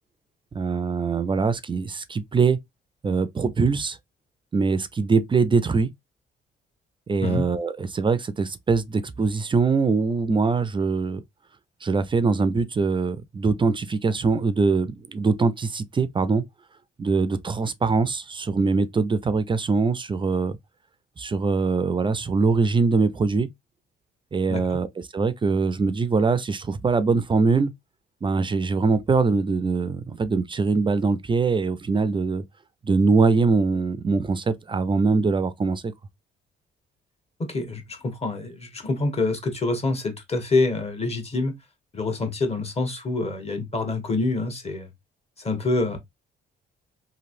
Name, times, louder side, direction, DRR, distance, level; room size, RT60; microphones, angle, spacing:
voice 1, 0.5-2.6 3.0-4.0 4.5-5.9 7.1-11.2 11.8-16.4 17.0-20.6 21.2-23.5 24.3-24.9 25.1-27.7 28.2-32.4 32.8-35.9, right 4 dB, 25° right, 0.4 m, -22 dB
voice 2, 37.4-41.5 41.9-44.9 45.4-46.0, left 3 dB, 30° left, 1.1 m, -26 dB
3.0 x 2.6 x 2.5 m
cardioid pair, 90°, 20 cm